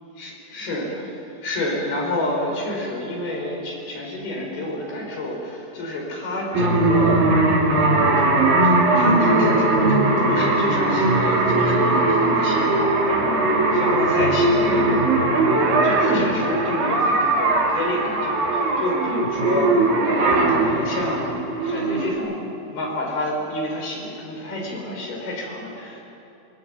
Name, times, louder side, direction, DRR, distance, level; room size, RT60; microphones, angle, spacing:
voice 1, 0.2-1.2 1.4-21.3 21.6-26.0, left 1 dB, 90° left, -1 dB, 6.8 m, -29 dB
sound 1, 6.5-22.1, right 2 dB, 70° right, 4.5 m, -19 dB
26.5 x 21.0 x 7.8 m, 2.8 s
omnidirectional pair, 4.3 m